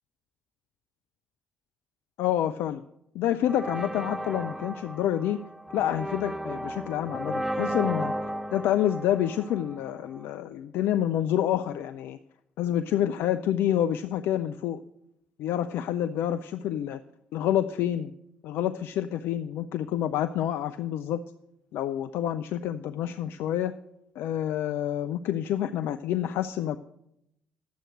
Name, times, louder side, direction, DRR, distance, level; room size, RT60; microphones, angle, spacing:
voice 1, 2.2-2.8 3.1-5.4 5.7-8.1 8.5-12.2 12.6-14.8 15.4-17.0 17.3-18.1 18.4-21.2 21.7-23.7 24.2-26.8, left 11 dB, 55° left, 11 dB, 0.3 m, -28 dB
sound 1, 3.5-10.2, equal, 5° right, 0.6 m, -34 dB
10.5 x 7.6 x 6.4 m, 0.81 s
figure-of-eight pair, 45°, 5 cm